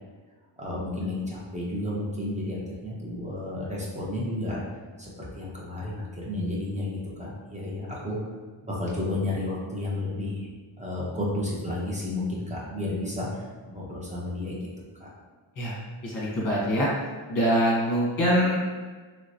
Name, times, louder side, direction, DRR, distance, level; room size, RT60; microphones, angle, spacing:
voice 1, 0.6-4.6 5.0-8.2 8.6-10.5 10.8-13.3 13.7-14.6 15.0-15.1, left 1 dB, 15° right, -5 dB, 0.6 m, -32 dB
voice 2, 15.6-16.9 17.3-18.6, equal, 40° left, -5 dB, 1.1 m, -24 dB
3.1 x 3.0 x 2.6 m, 1.4 s
wide cardioid pair, 165°, 49 cm